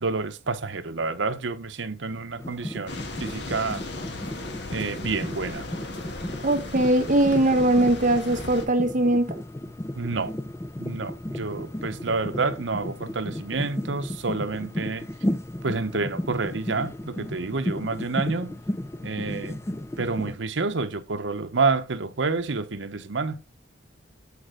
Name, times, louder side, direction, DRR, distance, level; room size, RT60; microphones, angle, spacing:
voice 1, 0.0-3.8 4.7-5.7 10.0-10.3 10.8-15.1 15.6-18.6 19.0-19.6 20.0-23.4, right 4 dB, 80° right, 0.9 m, -28 dB
sound 1, 2.4-20.3, left 1 dB, 15° left, 0.4 m, -34 dB
sound 2, 2.9-8.7, left 2 dB, 65° left, 1.5 m, -37 dB
voice 2, 6.4-9.4, right 1 dB, 45° right, 1.0 m, -21 dB
8.5 x 5.0 x 3.8 m
head